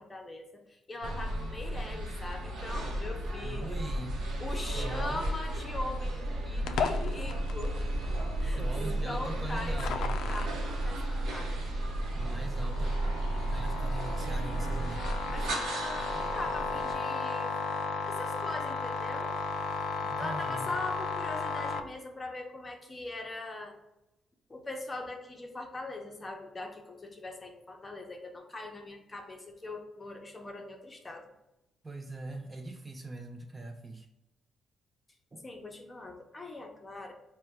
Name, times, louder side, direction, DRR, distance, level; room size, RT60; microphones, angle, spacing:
voice 1, 0.0-3.9 4.4-7.8 8.4-8.6 9.0-11.6 15.3-17.6 18.0-19.3 20.2-23.7 24.5-31.3 35.4-37.1, left 2 dB, 25° left, 3 dB, 0.7 m, -41 dB
sound 1, 1.0-16.9, right 1 dB, 75° right, 0.8 m, -33 dB
voice 2, 3.4-4.2 4.5-5.2 8.4-10.1 12.1-13.0 13.5-15.1 20.0-20.7 31.8-34.1 35.3-35.4, right 2 dB, 20° right, 3 dB, 0.4 m, -42 dB
sound 2, 6.7-21.8, left 4 dB, 80° left, 0.3 m, -36 dB
4.2 x 2.2 x 3.4 m, 0.91 s
cardioid pair, 90°, 0 cm